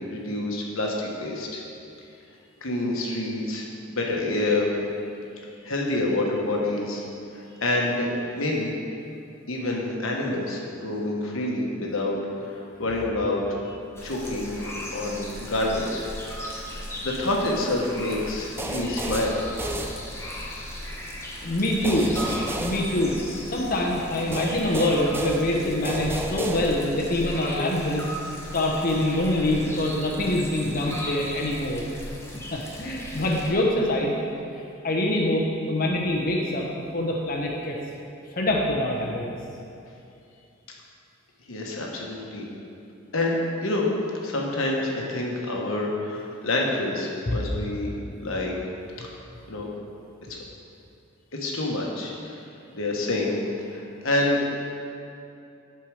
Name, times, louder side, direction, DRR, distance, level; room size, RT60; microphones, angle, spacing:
voice 1, 0.0-1.6 2.6-3.7 3.9-4.7 5.6-7.0 7.3-8.1 8.3-8.7 9.5-12.2 12.5-13.8 14.0-16.0 16.6-16.7 17.0-19.4 41.5-42.4 43.1-43.9 44.2-47.9 48.2-48.5 49.5-49.7 50.3-50.4 51.3-52.4 52.7-53.4 53.7-54.4, left 2 dB, 75° left, -1 dB, 1.3 m, -27 dB
sound 1, 14.0-33.5, left 1 dB, 10° left, 0.8 m, -37 dB
sound 2, 18.6-20.5 21.8-23.6 24.3-27.1, right 1 dB, 10° right, 0.4 m, -33 dB
voice 2, 21.4-22.2 22.6-23.2 23.5-28.0 28.5-31.8 32.5-34.1 34.8-36.7 36.9-37.8 38.3-39.2 47.3-47.4, left 1 dB, 45° left, -2 dB, 0.9 m, -25 dB
11.0 x 4.5 x 4.8 m, 2.6 s
head